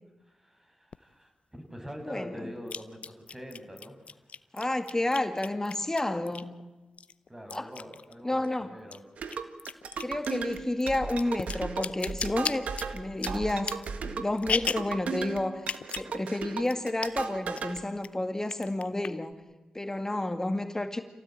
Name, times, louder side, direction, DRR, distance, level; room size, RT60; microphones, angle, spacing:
voice 1, 0.2-4.2 7.3-9.0, equal, 15° right, 4 dB, 6.6 m, -44 dB
sound 1, 0.9-1.0 2.7-6.6 7.0-8.5 8.8-15.0 15.6-16.1 16.4-16.5 16.7-17.3 17.6-18.1 18.5-19.3, left 6 dB, 65° left, 0.7 m, -36 dB
voice 2, 4.5-6.5 7.5-7.7 8.2-8.8 10.0-13.7 14.0-15.7 16.0-19.4 19.7-21.0, left 1 dB, 20° left, 8 dB, 2.2 m, -30 dB
sound 2, 9.2-17.8, right 5 dB, 80° right, 1.6 m, -36 dB
27.0 x 17.0 x 9.0 m, 1.2 s
supercardioid pair, 40°, 2 cm